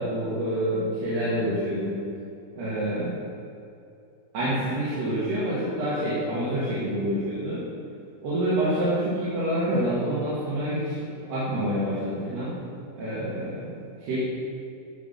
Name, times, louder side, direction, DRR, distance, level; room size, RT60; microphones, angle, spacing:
voice 1, 0.0-2.0 2.6-3.2 4.3-7.6 8.2-11.0 11.3-12.6 13.0-14.2, right 1 dB, 85° right, -11 dB, 4.0 m, -27 dB
11.0 x 5.3 x 5.7 m, 2.6 s
omnidirectional pair, 4.5 m